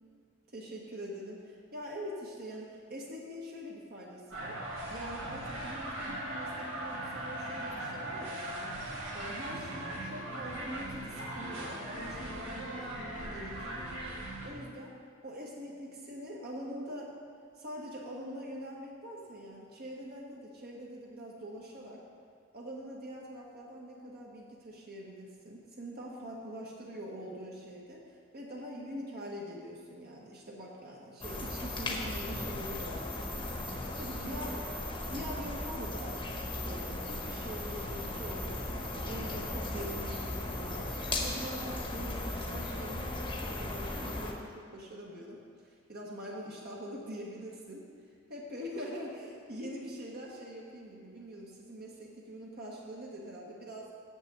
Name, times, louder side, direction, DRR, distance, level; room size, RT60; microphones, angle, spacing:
voice 1, 0.5-4.6 4.9-8.7 9.1-13.9 14.4-14.9 15.2-17.1 17.5-22.0 22.5-34.6 35.1-47.8 48.3-53.9, equal, 50° right, -3 dB, 1.4 m, -44 dB
sound 1, 4.3-14.5, right 1 dB, 75° right, 2.1 m, -39 dB
sound 2, 31.2-44.3, left 2 dB, 25° left, 1.0 m, -37 dB
7.2 x 6.2 x 7.8 m, 2.1 s
head